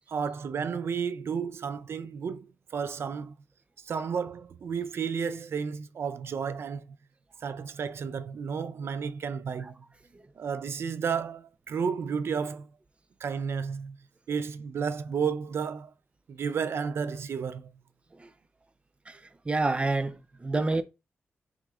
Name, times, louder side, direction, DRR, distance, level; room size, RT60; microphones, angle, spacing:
voice 1, 0.1-3.3 3.8-6.9 7.4-9.8 10.4-12.7 13.2-14.0 14.3-15.9 16.3-17.7, right 6 dB, 70° right, 0.4 m, -32 dB
voice 2, 19.5-20.8, right 3 dB, 25° right, 0.6 m, -27 dB
5.9 x 3.6 x 2.4 m
cardioid pair, 70°, 4 cm